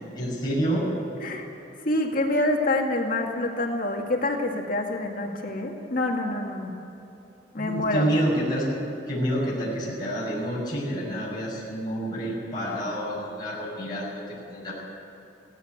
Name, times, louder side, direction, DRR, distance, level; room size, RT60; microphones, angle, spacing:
voice 1, 0.1-0.9 7.5-8.8 9.1-14.7, right 1 dB, 25° left, -6 dB, 6.7 m, -28 dB
voice 2, 1.8-6.7 7.5-8.1, left 2 dB, 50° left, 1 dB, 2.0 m, -26 dB
17.0 x 16.0 x 9.6 m, 2.9 s
head